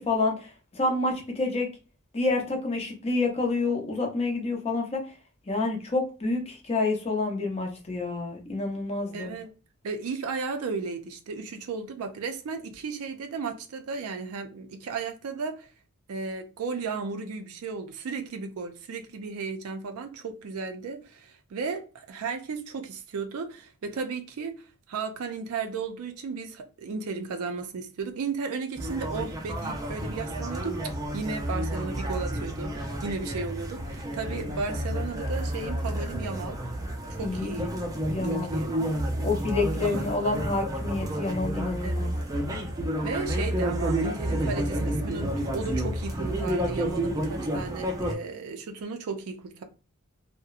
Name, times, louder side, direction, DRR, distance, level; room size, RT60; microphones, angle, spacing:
voice 1, 0.1-1.7 2.1-5.0 5.5-9.3 37.2-37.6 38.1-38.5 39.2-42.1, left 3 dB, 30° left, 0.6 m, -28 dB
voice 2, 9.1-9.5 9.8-15.7 16.1-36.6 37.1-37.7 38.3-38.8 39.8-40.1 41.8-42.0 43.0-49.6, right 4 dB, 75° right, 0.4 m, -34 dB
sound 1, 28.8-48.1, right 1 dB, 15° right, 0.4 m, -30 dB
2.7 x 2.0 x 2.3 m
head